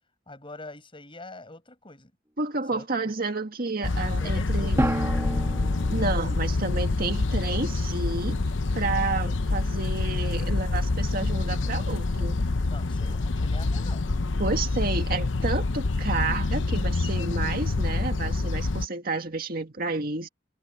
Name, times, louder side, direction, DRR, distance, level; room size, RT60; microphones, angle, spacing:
voice 1, 0.3-2.1 2.7-2.9 4.2-4.8 12.7-14.0, left 2 dB, 25° left, 7.1 m, -44 dB
voice 2, 2.4-4.8 5.9-8.4 8.7-12.4 14.4-20.3, right 3 dB, 50° right, 2.0 m, -30 dB
sound 1, 3.8-18.9, left 3 dB, 70° left, 0.8 m, -26 dB
Drum, 4.8-7.1, right 1 dB, 15° right, 1.7 m, -30 dB
head